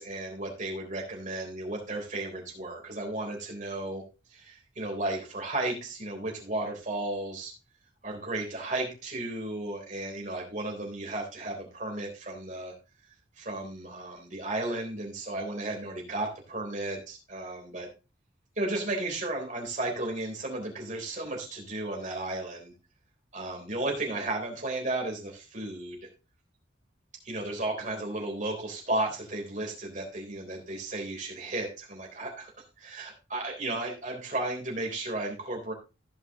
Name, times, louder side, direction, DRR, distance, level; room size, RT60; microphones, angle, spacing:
voice 1, 0.0-4.0 4.3-7.5 8.0-12.7 13.4-17.9 18.6-22.7 23.3-26.1 27.2-32.5 32.8-35.7, right 2 dB, 40° right, 0 dB, 3.7 m, -34 dB
15.5 x 5.4 x 3.6 m, 0.30 s
head